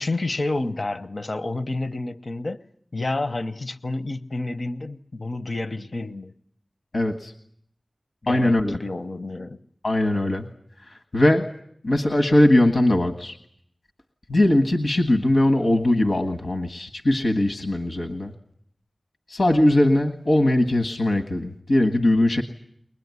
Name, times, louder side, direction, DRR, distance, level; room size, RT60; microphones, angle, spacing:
voice 1, 0.0-2.6 2.9-6.3 8.2-9.6, left 2 dB, 60° left, 0.9 m, -29 dB
voice 2, 6.9-7.3 8.3-8.8 9.8-10.4 11.1-11.5 11.8-13.4 14.3-18.3 19.3-22.4, left 1 dB, 80° left, 1.6 m, -20 dB
23.0 x 20.0 x 9.6 m
wide cardioid pair, 70°, 0 cm